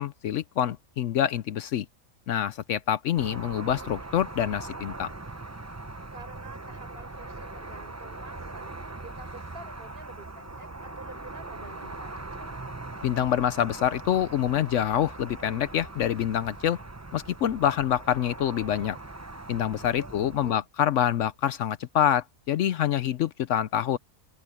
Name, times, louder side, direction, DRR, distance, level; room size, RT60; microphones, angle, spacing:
voice 1, 0.0-1.9 2.3-5.1 13.0-16.8 17.1-19.0 19.5-24.0, left 10 dB, 65° left, 0.8 m, -26 dB
sound 1, 3.2-20.5, right 2 dB, 15° right, 0.6 m, -41 dB
voice 2, 6.1-12.6 20.0-20.7, right 2 dB, 40° right, 4.7 m, -48 dB
open air
omnidirectional pair, 1.5 m